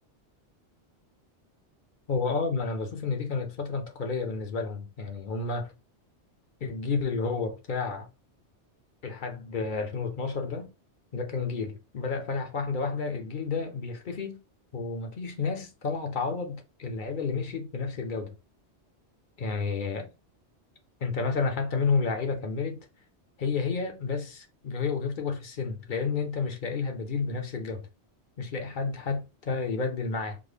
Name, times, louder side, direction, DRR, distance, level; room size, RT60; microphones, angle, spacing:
voice 1, 2.1-5.7 6.6-8.1 9.0-10.7 11.1-14.4 14.7-18.3 19.4-20.1 21.0-22.8 23.4-27.9 28.4-30.4, left 4 dB, 50° left, 0.8 m, -31 dB
3.8 x 2.1 x 3.2 m
omnidirectional pair, 1.2 m